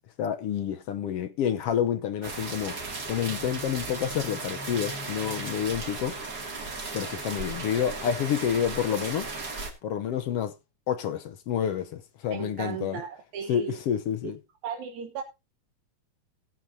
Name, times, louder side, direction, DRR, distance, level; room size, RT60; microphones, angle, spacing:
voice 1, 0.2-6.2 6.9-9.3 9.8-10.5 10.9-13.0 13.5-14.4, left 9 dB, 65° left, 1.6 m, -29 dB
sound 1, 2.2-9.7, right 3 dB, 35° right, 2.8 m, -36 dB
voice 2, 12.3-13.8 14.6-15.2, right 7 dB, 80° right, 2.6 m, -36 dB
18.5 x 9.2 x 2.7 m
omnidirectional pair, 3.3 m